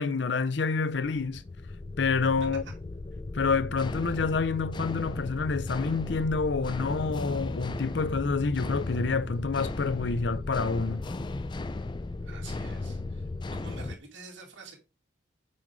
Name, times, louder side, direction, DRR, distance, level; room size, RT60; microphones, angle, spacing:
voice 1, 0.0-1.4 2.0-2.6 3.3-11.0, left 4 dB, 65° left, 0.6 m, -28 dB
sound 1, 1.0-14.0, left 2 dB, 25° left, 0.4 m, -36 dB
voice 2, 12.2-14.8, right 3 dB, 75° right, 2.5 m, -47 dB
7.7 x 5.4 x 3.7 m
head